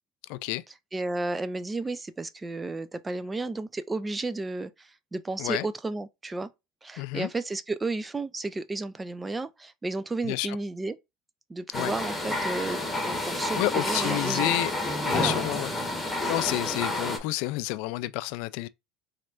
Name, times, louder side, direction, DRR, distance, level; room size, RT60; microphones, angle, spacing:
voice 1, 0.3-0.6 5.4-5.6 7.0-7.3 10.2-10.5 11.7-11.9 13.6-14.7 15.0-15.7 16.3-18.7, left 18 dB, 70° left, 0.3 m, -29 dB
voice 2, 0.9-6.5 6.8-11.0 11.5-14.5 15.1-15.4, right 2 dB, 15° right, 0.4 m, -33 dB
sound 1, 11.7-17.2, left 2 dB, 5° left, 1.4 m, -29 dB
4.2 x 3.2 x 2.4 m
supercardioid pair, 105°, 0 cm